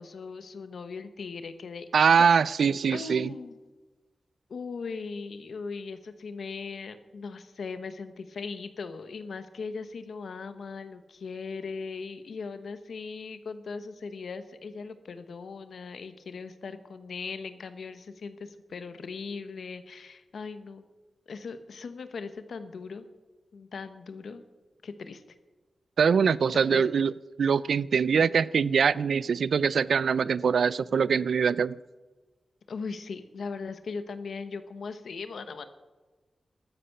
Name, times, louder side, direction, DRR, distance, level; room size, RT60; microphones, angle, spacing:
voice 1, 0.0-2.3 2.9-3.6 4.5-20.8 21.3-23.0 23.5-24.4 24.8-25.2 26.5-26.8 32.7-35.7, left 4 dB, 80° left, 11 dB, 1.0 m, -39 dB
voice 2, 1.9-3.3 26.0-27.1 27.4-31.7, right 6 dB, 85° right, 20 dB, 0.3 m, -23 dB
12.5 x 10.0 x 6.7 m, 1.3 s
wide cardioid pair, 105°, 0 cm